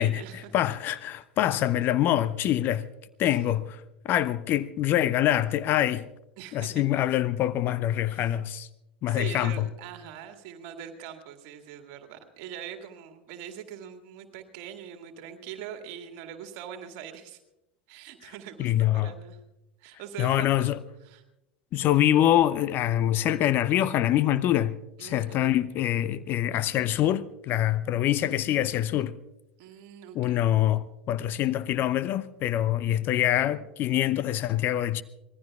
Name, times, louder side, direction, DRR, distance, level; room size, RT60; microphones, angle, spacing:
voice 1, 0.0-0.5 3.2-3.4 6.4-6.8 8.1-8.4 9.1-17.4 17.9-19.4 19.8-20.5 21.0-21.2 25.0-25.6 29.6-30.4, right 9 dB, 50° right, 2.0 m, -42 dB
voice 2, 0.5-2.9 3.2-6.1 6.5-8.7 9.0-9.7 18.6-19.1 20.2-20.8 21.7-29.1 30.1-35.0, left 12 dB, 40° left, 0.6 m, -25 dB
25.0 x 20.0 x 2.4 m
figure-of-eight pair, 80°, 6 cm